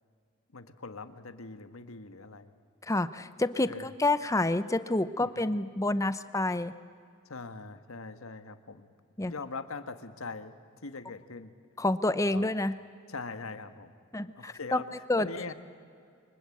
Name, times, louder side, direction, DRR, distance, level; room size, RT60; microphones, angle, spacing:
voice 1, 0.5-2.5 3.7-3.9 5.2-5.4 7.2-8.9 9.3-10.5 10.8-11.5 12.3-12.5 13.1-13.9 14.4-15.5, left 4 dB, 85° left, 10 dB, 1.6 m, -42 dB
voice 2, 2.8-6.7 9.2-9.3 11.8-12.8 14.1-14.8 15.1-15.3, left 2 dB, 15° left, 13 dB, 0.7 m, -28 dB
28.0 x 24.5 x 8.6 m, 2.3 s
head